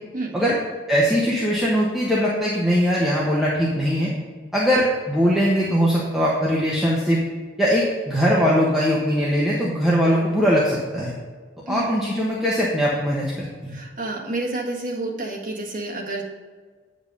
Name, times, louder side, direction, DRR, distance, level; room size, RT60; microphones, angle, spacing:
voice 1, 0.1-0.5 11.7-11.9 13.7-16.2, right 2 dB, 45° right, -1 dB, 1.5 m, -29 dB
voice 2, 0.9-4.1 4.5-7.2 7.6-11.1 11.7-13.8, equal, ahead, -6 dB, 1.1 m, -21 dB
8.6 x 5.3 x 5.4 m, 1.5 s
head